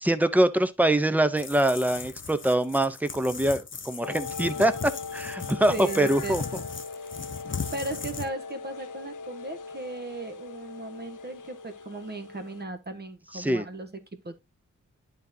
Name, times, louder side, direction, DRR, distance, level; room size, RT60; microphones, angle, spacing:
voice 1, 0.0-4.7 5.1-6.4 13.3-13.6, right 1 dB, 5° right, 0.7 m, -24 dB
sound 1, 1.4-8.3, left 5 dB, 40° left, 0.8 m, -38 dB
sound 2, 4.0-12.6, left 4 dB, 90° left, 0.8 m, -40 dB
voice 2, 5.7-6.4 7.7-13.9 14.2-14.3, right 3 dB, 35° right, 1.3 m, -36 dB
11.0 x 4.1 x 2.8 m
wide cardioid pair, 95°, 30 cm